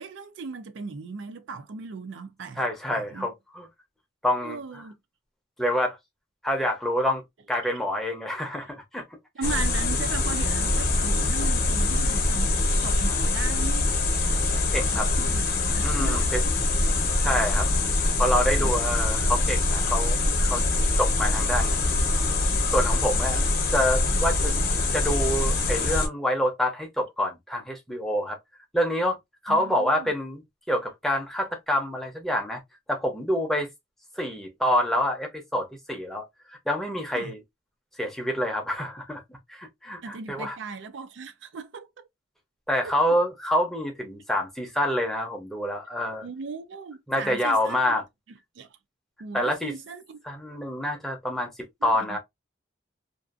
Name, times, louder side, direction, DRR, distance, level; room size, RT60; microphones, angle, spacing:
voice 1, 0.0-2.6 2.9-3.3 4.4-5.0 9.3-12.5 12.8-13.9 14.9-16.3 18.6-18.9 29.5-30.1 37.1-37.3 40.0-42.1 42.8-43.0 46.2-47.9 48.3-48.7 49.2-50.2 51.8-52.2, right 4 dB, 75° right, 0.4 m, -37 dB
voice 2, 2.6-3.7 4.2-4.6 5.6-6.0 6.4-7.2 7.5-9.0 14.7-15.1 15.8-16.4 17.2-17.7 18.2-20.6 21.0-21.8 22.7-24.5 24.9-28.4 28.7-29.2 29.4-30.4 30.7-32.6 32.9-33.7 34.2-36.3 36.7-37.4 38.0-39.2 39.5-40.6 42.7-46.2 47.1-48.0 49.3-49.7 50.2-51.5 51.8-52.2, left 1 dB, ahead, 0.7 m, -27 dB
sound 1, 9.4-26.1, left 2 dB, 50° left, 0.8 m, -24 dB
2.6 x 2.4 x 2.3 m
head